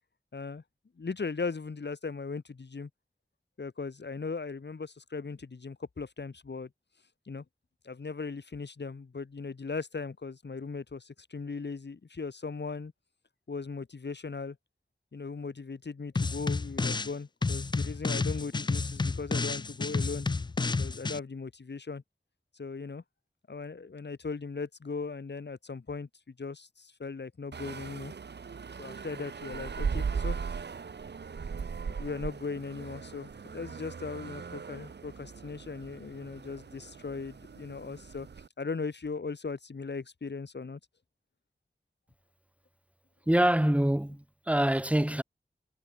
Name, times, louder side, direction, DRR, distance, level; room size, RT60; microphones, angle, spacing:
voice 1, 0.3-0.6 1.0-2.9 3.6-6.7 7.3-7.4 7.8-12.9 13.5-14.6 15.1-20.3 20.8-22.0 22.5-23.0 23.5-28.1 28.8-30.4 32.0-38.3 38.6-40.8, left 4 dB, 85° left, 2.2 m, -38 dB
sound 1, 16.2-17.1 17.4-21.2, left 3 dB, 25° left, 0.3 m, -30 dB
sound 2, 27.5-38.5, right 5 dB, 75° right, 0.7 m, -38 dB
voice 2, 43.3-45.2, right 1 dB, 5° right, 1.0 m, -25 dB
wide cardioid pair, 40°, 17 cm